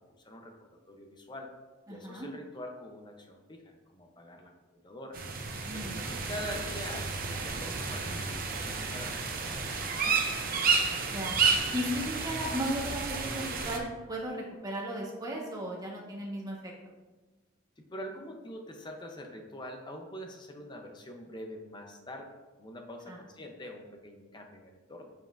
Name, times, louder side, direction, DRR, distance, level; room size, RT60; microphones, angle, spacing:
voice 1, 0.0-1.5 1.9-4.5 4.8-5.2 5.7-10.3 17.8-25.1, left 1 dB, 20° left, 3 dB, 0.6 m, -45 dB
voice 2, 1.9-2.3 5.6-6.0 11.1-11.3 11.7-16.7 23.1-23.2, equal, 20° right, -3 dB, 1.2 m, -36 dB
sound 1, 5.1-13.8, right 4 dB, 45° right, 0.7 m, -31 dB
7.6 x 5.4 x 2.5 m, 1.2 s
head